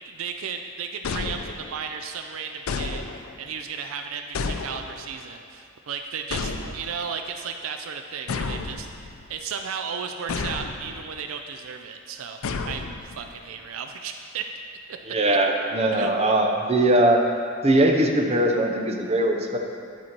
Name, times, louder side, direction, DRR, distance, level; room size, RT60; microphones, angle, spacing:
voice 1, 0.1-3.0 3.4-8.9 9.3-12.4 12.7-14.4 15.9-16.1, right 6 dB, 75° right, 6 dB, 0.4 m, -34 dB
sound 1, 1.0-1.9 2.7-3.5 4.3-5.2 6.3-7.1 8.3-9.3 10.3-11.1 12.4-13.3, left 4 dB, 85° left, 0.5 m, -31 dB
voice 2, 15.1-17.2 17.6-19.6, right 1 dB, 30° right, 2 dB, 0.7 m, -20 dB
11.0 x 4.4 x 4.5 m, 2.4 s
head